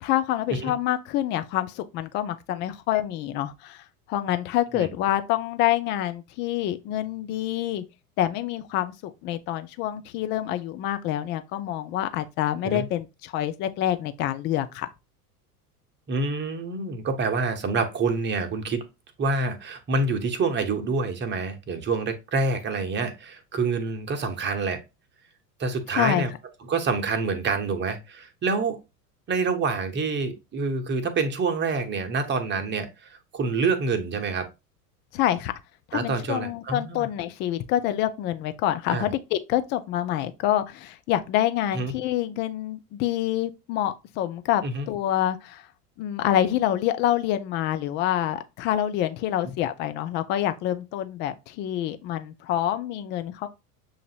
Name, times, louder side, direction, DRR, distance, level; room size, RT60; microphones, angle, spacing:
voice 1, 0.0-3.8 4.1-7.8 8.2-14.9 25.9-26.3 35.1-35.5 35.9-45.7 46.0-53.5, left 12 dB, 25° left, 0.3 m, -27 dB
voice 2, 16.1-18.8 19.2-24.8 25.6-26.3 26.7-28.8 29.3-34.5 35.9-37.1 38.9-39.1 41.7-41.9 44.6-44.9, right 4 dB, 25° right, 0.9 m, -27 dB
6.9 x 2.5 x 2.8 m
figure-of-eight pair, 80°, 47 cm